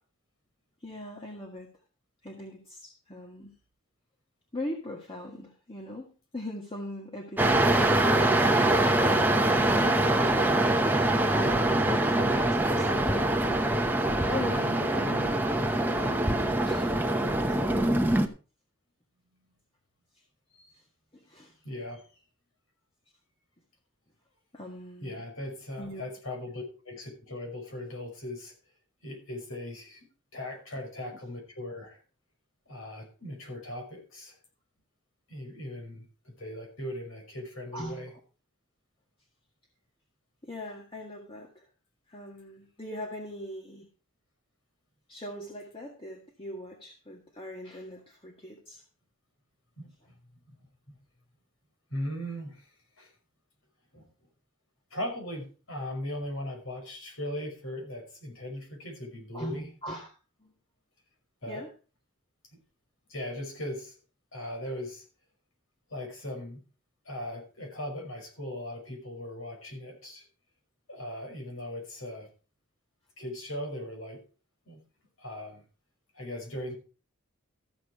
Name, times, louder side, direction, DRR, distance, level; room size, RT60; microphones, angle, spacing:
voice 1, 0.8-1.7 2.2-3.5 4.5-7.6 8.4-10.7 11.3-14.0 14.3-18.2 21.1-21.5 24.5-25.2 25.8-26.0 37.7-38.0 40.4-41.7 42.1-43.9 45.1-48.8 59.3-60.1 60.4-60.5 61.5-61.7, left 1 dB, 25° left, 0 dB, 1.7 m, -40 dB
voice 2, 7.4-7.8 11.7-12.0 20.5-20.7 21.6-22.0 25.0-28.5 29.0-30.1 30.3-32.0 32.7-34.4 35.3-36.1 36.4-38.1 49.8-50.2 50.5-50.6 50.9-51.0 51.9-52.7 53.0-53.1 53.9-54.1 54.9-59.7 61.4-61.6 63.1-63.9 64.3-65.0 65.9-66.6 67.1-70.2 70.9-72.3 73.2-74.2 74.7-74.8 75.2-75.6 76.1-76.7, left 1 dB, 85° left, 3 dB, 5.5 m, -38 dB
sound 1, 7.4-18.3, right 1 dB, 10° right, 0.9 m, -24 dB
14.0 x 7.3 x 4.8 m, 0.35 s
head